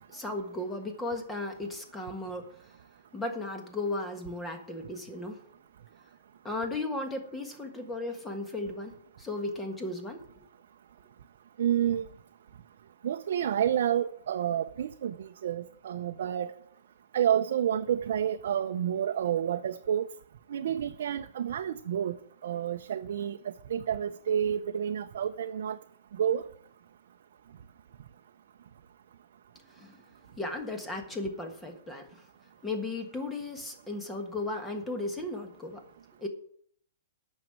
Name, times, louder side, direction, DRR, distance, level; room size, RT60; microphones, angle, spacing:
voice 1, 0.1-2.5 3.1-5.4 6.4-8.9 9.2-10.2 29.8-29.9 30.4-32.1 32.6-35.8 36.2-36.3, left 2 dB, 10° left, 5 dB, 1.4 m, -35 dB
voice 2, 11.6-12.1 13.0-16.5 17.1-20.1 20.5-22.2 22.4-23.4 23.7-25.8 26.2-26.5, right 9 dB, 65° right, 6 dB, 0.6 m, -29 dB
9.3 x 6.4 x 8.7 m, 0.64 s
hypercardioid pair, 160°, 0 cm